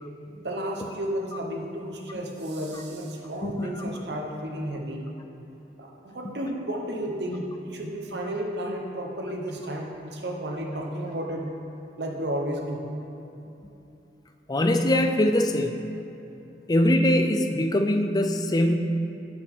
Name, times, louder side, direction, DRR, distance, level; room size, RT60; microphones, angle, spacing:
voice 1, 0.4-5.0 5.8-11.5 12.0-12.9, right 1 dB, 65° right, 0 dB, 0.9 m, -32 dB
voice 2, 3.4-3.9 14.5-15.8 16.7-18.8, left 1 dB, 20° left, 5 dB, 0.4 m, -22 dB
11.0 x 5.3 x 3.6 m, 2.9 s
head